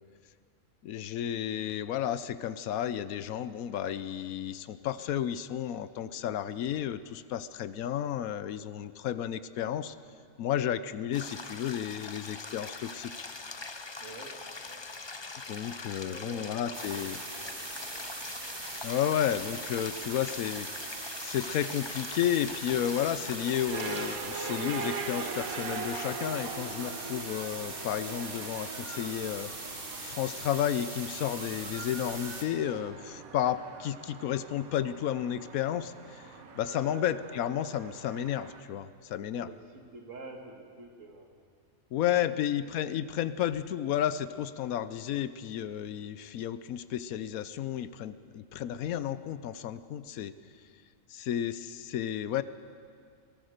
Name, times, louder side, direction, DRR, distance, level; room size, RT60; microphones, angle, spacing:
voice 1, 0.8-10.0 10.4-13.1 15.5-17.2 18.8-20.7 21.2-29.5 30.0-36.2 36.6-39.5 41.9-50.3 51.1-52.4, left 10 dB, 90° left, 14 dB, 1.1 m, -32 dB
sound 1, 11.1-24.2, left 3 dB, 25° left, 0.6 m, -43 dB
voice 2, 14.0-14.9 16.1-17.0 17.4-17.6 17.9-18.0 36.7-37.0 39.3-41.3 42.0-42.3, right 3 dB, 65° right, 3 dB, 2.5 m, -48 dB
sound 2, 16.7-32.4, right 2 dB, 40° right, 2.1 m, -41 dB
sound 3, 23.7-38.6, right 5 dB, 90° right, 1.8 m, -41 dB
22.5 x 18.5 x 6.6 m, 2.2 s
omnidirectional pair, 1.4 m